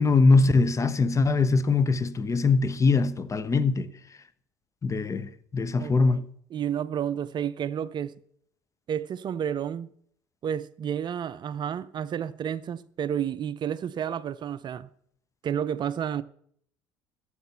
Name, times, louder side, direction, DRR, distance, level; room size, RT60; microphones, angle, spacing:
voice 1, 0.0-3.9 4.8-6.2, left 3 dB, 30° left, 1.0 m, -22 dB
voice 2, 5.8-6.2 6.5-8.1 8.9-9.9 10.4-14.9 15.4-16.2, right 9 dB, 45° right, 0.5 m, -31 dB
12.0 x 6.9 x 6.9 m
hypercardioid pair, 70°, 11 cm